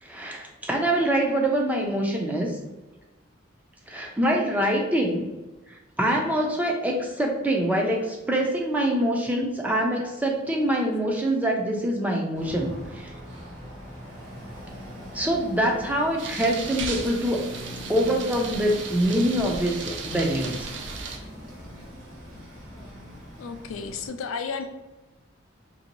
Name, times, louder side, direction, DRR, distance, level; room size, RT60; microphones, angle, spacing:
voice 1, 0.0-2.6 3.9-5.3 5.7-13.1 15.1-17.4 17.9-20.7, right 1 dB, 10° right, 0 dB, 0.4 m, -25 dB
sound 1, 12.3-24.1, equal, 90° right, 1.4 m, -41 dB
sound 2, 16.2-21.2, right 4 dB, 60° right, 0.5 m, -35 dB
voice 2, 23.4-24.6, left 5 dB, 85° left, 7 dB, 0.4 m, -33 dB
2.9 x 2.6 x 2.9 m, 1.1 s
head